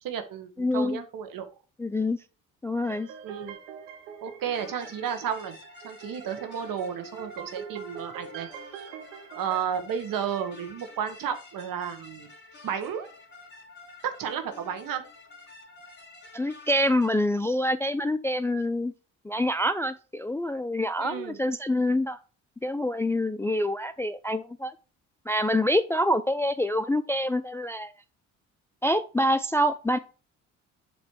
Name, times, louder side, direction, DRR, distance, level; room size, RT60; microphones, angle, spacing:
voice 1, 0.0-1.5 3.2-3.6 4.2-5.6 5.8-8.5 9.3-12.3 12.6-13.1 14.0-15.0 21.0-21.4, right 8 dB, 60° right, 7 dB, 1.3 m, -32 dB
voice 2, 0.6-1.0 1.8-2.2 2.6-3.1 16.3-18.9 19.2-22.2 22.6-24.7 25.3-27.9 28.8-30.0, left 1 dB, 5° left, 11 dB, 0.3 m, -26 dB
sound 1, 2.8-9.6, right 7 dB, 90° right, 0.8 m, -44 dB
sound 2, 4.5-17.1, left 3 dB, 30° left, 2.6 m, -50 dB
7.2 x 3.1 x 4.7 m, 0.35 s
hypercardioid pair, 55°, 37 cm